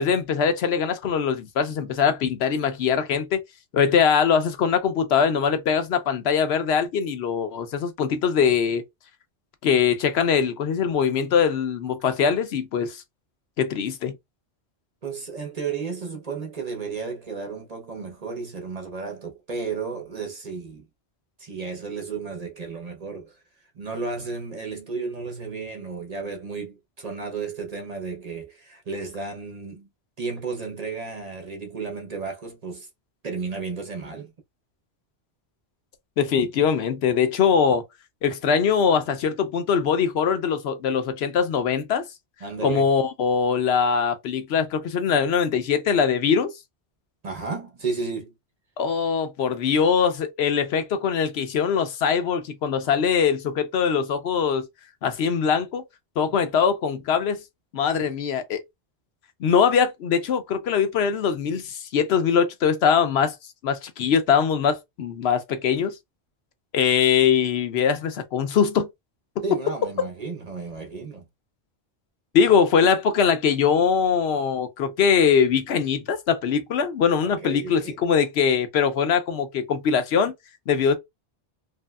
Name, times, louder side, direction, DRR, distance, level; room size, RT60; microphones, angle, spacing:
voice 1, 0.0-3.4 3.7-8.8 9.6-13.0 13.6-14.1 36.2-37.8 38.2-42.1 42.6-46.5 48.8-54.7 55.0-55.8 56.2-57.4 57.7-58.6 59.4-63.4 63.6-65.9 66.7-68.9 69.4-69.5 72.3-80.3 80.7-80.9, left 6 dB, 75° left, 0.9 m, -22 dB
voice 2, 15.0-20.9 21.4-23.4 23.7-29.9 30.2-32.9 33.2-34.3 42.4-42.9 47.2-48.3 69.4-71.3 77.2-78.0, right 4 dB, 40° right, 0.7 m, -33 dB
3.0 x 2.7 x 2.2 m
omnidirectional pair, 1.1 m